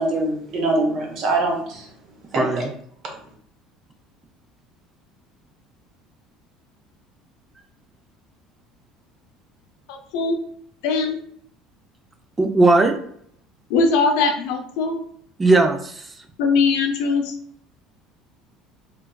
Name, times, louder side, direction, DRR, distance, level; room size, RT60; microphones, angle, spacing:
voice 1, 0.0-1.8 2.3-2.6, right 2 dB, 55° right, 1 dB, 0.9 m, -23 dB
voice 2, 2.3-2.7 12.4-13.0 15.4-16.1, right 2 dB, 20° right, 5 dB, 0.4 m, -18 dB
voice 3, 9.9-10.3 10.8-11.2 13.7-15.0 16.4-17.4, left 4 dB, 80° left, 4 dB, 0.5 m, -20 dB
3.3 x 2.2 x 2.2 m, 0.65 s
supercardioid pair, 115°, 0 cm